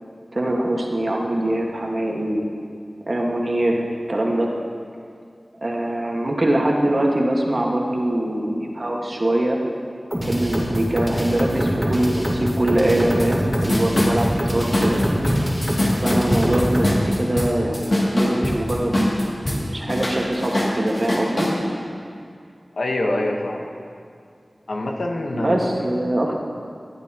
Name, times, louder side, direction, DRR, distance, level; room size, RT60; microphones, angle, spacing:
voice 1, 0.3-2.4 3.1-4.5 5.6-9.6 10.2-15.0 15.9-19.1 19.5-21.5 25.3-26.3, right 1 dB, 50° right, -1 dB, 1.6 m, -23 dB
sound 1, 10.1-16.9, equal, 10° right, 2.7 m, -24 dB
sound 2, 13.2-13.3 13.5-19.6 19.9-21.6, left 1 dB, 50° left, 2.5 m, -22 dB
voice 2, 22.8-23.7 24.7-25.9 26.3-26.4, left 1 dB, 90° left, 1 dB, 1.2 m, -25 dB
19.5 x 12.0 x 3.0 m, 2.3 s
wide cardioid pair, 65°, 0 cm